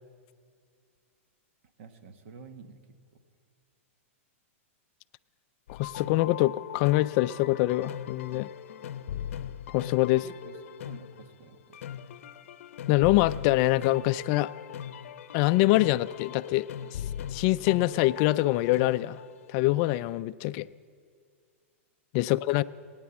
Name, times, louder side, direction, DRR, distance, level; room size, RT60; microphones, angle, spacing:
voice 1, 1.8-2.8 10.2-10.6 10.8-11.8 22.2-22.3, right 5 dB, 60° right, 8 dB, 1.4 m, -49 dB
sound 1, 5.7-19.7, left 9 dB, 70° left, 0.7 m, -40 dB
voice 2, 5.7-8.5 9.7-10.2 12.9-14.5 15.3-17.0 17.3-19.2 19.5-20.7 22.1-22.6, left 17 dB, 40° left, 15 dB, 0.3 m, -24 dB
21.0 x 9.6 x 7.2 m, 2.1 s
hypercardioid pair, 135°, 7 cm